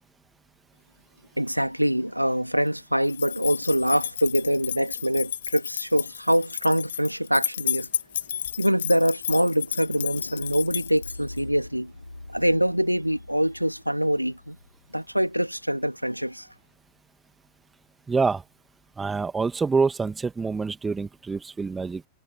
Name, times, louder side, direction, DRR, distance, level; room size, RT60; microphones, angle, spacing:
voice 1, 1.4-7.9 8.6-11.9 12.3-14.6 14.9-16.5, equal, 90° right, 2.6 m, -24 dB
sound 1, 3.1-11.4, left 9 dB, 65° left, 1.1 m, -32 dB
sound 2, 3.7-5.8 7.7-15.7, left 2 dB, 85° left, 5.9 m, -46 dB
voice 2, 18.1-18.4 19.0-22.1, right 4 dB, 15° right, 2.2 m, -26 dB
figure-of-eight pair, 90°, 0 cm